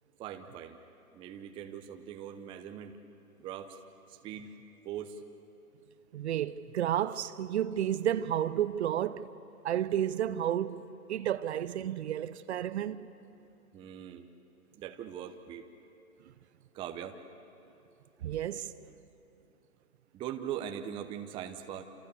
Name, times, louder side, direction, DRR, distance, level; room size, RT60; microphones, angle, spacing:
voice 1, 0.2-0.8 1.1-2.9 3.4-3.8 4.1-4.5 4.8-5.2 10.7-10.8 13.7-14.3 14.7-15.7 16.7-17.2 20.1-21.8, right 9 dB, 10° right, 0.7 m, -41 dB
voice 2, 6.1-9.3 9.6-13.1 18.2-18.7, right 11 dB, 45° right, 0.8 m, -31 dB
29.0 x 28.0 x 7.0 m
hypercardioid pair, 135°, 46 cm